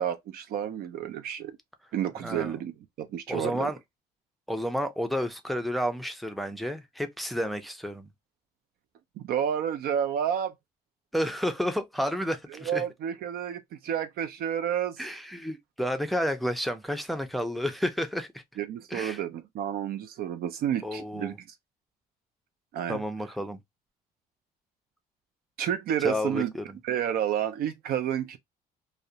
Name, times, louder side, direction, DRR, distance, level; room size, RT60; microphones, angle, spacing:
voice 1, 0.0-1.6 1.9-2.7 3.0-3.7 9.2-10.5 12.6-15.0 18.6-21.3 22.7-23.0 25.6-26.5 26.8-28.4, right 9 dB, 65° right, 0.4 m, -30 dB
voice 2, 2.2-2.5 3.3-3.8 4.5-8.1 11.1-12.8 15.0-18.3 18.9-19.2 20.8-21.4 22.9-23.6 26.0-26.8, equal, ahead, 0.4 m, -31 dB
2.4 x 2.0 x 2.7 m
cardioid pair, 110°, 17 cm